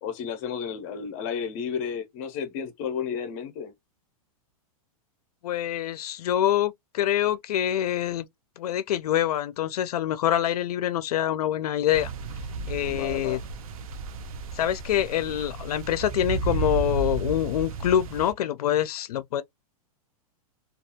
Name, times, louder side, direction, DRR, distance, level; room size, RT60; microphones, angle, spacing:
voice 1, 0.0-3.7 12.8-13.4, left 7 dB, 25° left, 0.5 m, -32 dB
voice 2, 5.4-8.3 8.6-12.1 12.7-13.4 14.5-19.4, left 11 dB, 85° left, 0.4 m, -25 dB
sound 1, 11.9-18.3, right 4 dB, 65° right, 0.6 m, -33 dB
2.3 x 2.3 x 2.7 m
supercardioid pair, 175°, 19 cm